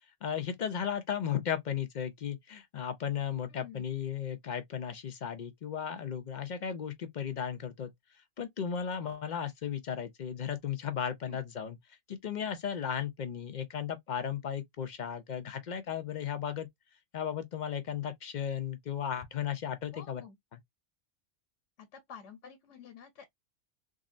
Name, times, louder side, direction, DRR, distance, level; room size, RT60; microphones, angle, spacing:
voice 1, 0.2-7.9 8.4-16.7 17.1-20.2 20.5-20.6, left 8 dB, 55° left, 0.5 m, -35 dB
voice 2, 19.9-20.4 21.8-23.3, left 7 dB, 85° left, 1.1 m, -50 dB
3.6 x 2.0 x 2.4 m
omnidirectional pair, 1.2 m